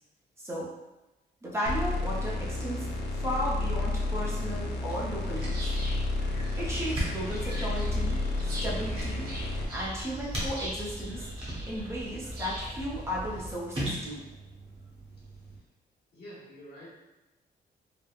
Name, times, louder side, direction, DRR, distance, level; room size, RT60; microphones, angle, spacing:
voice 1, 0.4-0.7 1.4-5.7 6.6-8.2 8.6-9.3 9.7-11.3 11.7-14.2, equal, 15° right, -6 dB, 0.6 m, -35 dB
sound 1, 1.7-9.7, left 2 dB, 85° left, 0.5 m, -31 dB
sound 2, 4.4-15.6, right 1 dB, 35° right, 1.0 m, -40 dB
sound 3, 5.3-13.5, equal, 65° right, 0.9 m, -39 dB
voice 2, 15.2-15.6 16.1-16.9, equal, 70° left, -7 dB, 1.2 m, -49 dB
3.4 x 2.1 x 2.3 m, 1.0 s
cardioid pair, 125°, 17 cm